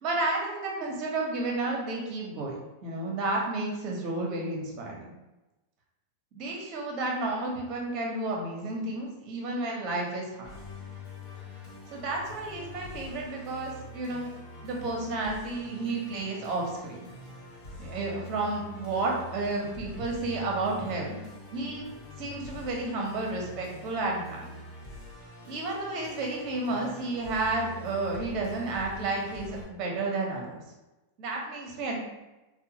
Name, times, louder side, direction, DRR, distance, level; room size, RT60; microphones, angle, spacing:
voice 1, 0.0-2.5 2.8-5.1 6.3-10.5 11.9-14.3 14.6-17.1 17.8-21.2 21.5-21.9 22.2-24.4 25.4-30.6 31.2-32.0, right 2 dB, 45° right, -1 dB, 0.9 m, -31 dB
Musical instrument, 10.4-29.6, left 2 dB, 50° left, 1.2 m, -45 dB
2.8 x 2.2 x 2.8 m, 1.0 s
hypercardioid pair, 115°, 0 cm